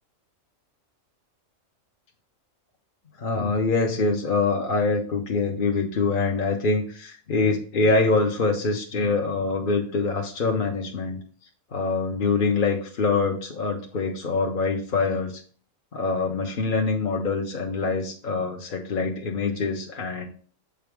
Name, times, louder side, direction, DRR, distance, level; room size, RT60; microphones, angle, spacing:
voice 1, 3.2-11.2 11.7-15.4 15.9-20.3, left 3 dB, 45° left, 1 dB, 0.8 m, -24 dB
7.7 x 4.9 x 3.5 m, 0.43 s
omnidirectional pair, 1.4 m